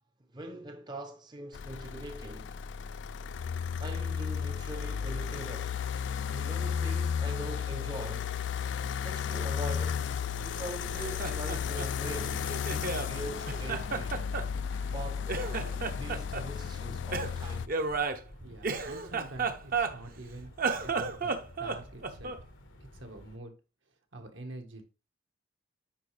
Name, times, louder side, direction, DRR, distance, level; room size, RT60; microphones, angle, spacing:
voice 1, 0.3-2.6 3.8-5.8 6.3-8.3 9.0-10.1 10.4-14.2 14.9-15.6 15.9-17.7, right 1 dB, 25° right, 0.6 m, -42 dB
sound 1, 1.5-17.7, left 7 dB, 65° left, 0.3 m, -34 dB
sound 2, 10.5-23.4, left 1 dB, 85° left, 1.3 m, -54 dB
Laughter, 10.8-13.1 13.5-15.0 15.3-16.5 17.1-20.2 20.5-22.5, right 4 dB, 50° right, 0.8 m, -33 dB
voice 2, 18.4-20.5 20.8-22.3 22.8-23.5 24.1-24.8, right 2 dB, 75° right, 1.4 m, -46 dB
8.9 x 5.0 x 3.3 m
head